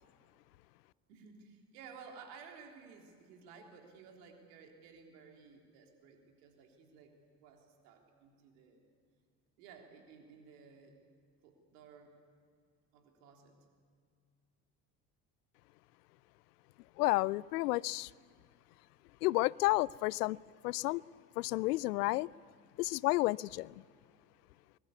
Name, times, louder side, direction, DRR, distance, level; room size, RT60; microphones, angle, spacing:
voice 1, 1.1-7.1 7.4-8.8 9.6-10.9 11.4-12.1 12.9-13.6, right 5 dB, 70° right, 3 dB, 3.6 m, -55 dB
voice 2, 17.0-18.1 19.2-20.4 20.6-21.0 21.4-22.3 22.8-23.7, left 20 dB, 70° left, 24 dB, 0.5 m, -31 dB
23.5 x 21.5 x 8.3 m, 2.1 s
figure-of-eight pair, 60°, 49 cm